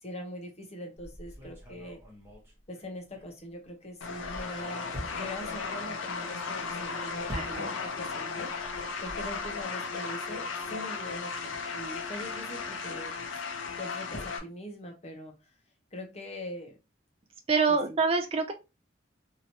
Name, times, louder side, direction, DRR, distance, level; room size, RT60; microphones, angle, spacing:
voice 1, 0.0-2.0 2.7-8.5 9.0-13.1 13.8-15.5 15.9-16.8 17.7-18.0, equal, 35° left, 2 dB, 0.8 m, -42 dB
sound 1, 1.0-3.7 4.0-8.1 8.3-9.6, equal, 10° right, 1.1 m, -45 dB
sound 2, 4.0-14.4, left 4 dB, 90° left, 0.7 m, -36 dB
voice 2, 7.3-7.7 17.5-18.5, right 4 dB, 30° right, 4 dB, 0.3 m, -26 dB
3.0 x 2.8 x 2.7 m, 0.27 s
head